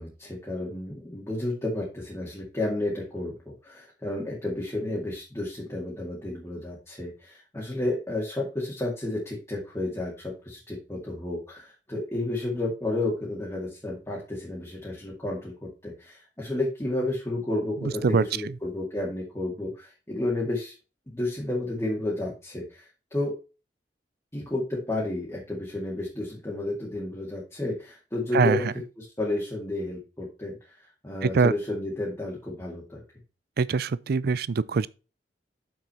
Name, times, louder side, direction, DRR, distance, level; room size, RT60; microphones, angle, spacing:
voice 1, 0.0-20.7 21.1-23.3 24.3-28.7 29.0-30.6 31.0-33.0, left 2 dB, 15° left, 2.3 m, -31 dB
voice 2, 17.8-18.5 28.3-28.7 31.2-31.5 33.6-34.9, right 5 dB, 60° right, 0.4 m, -24 dB
6.9 x 6.2 x 4.3 m
head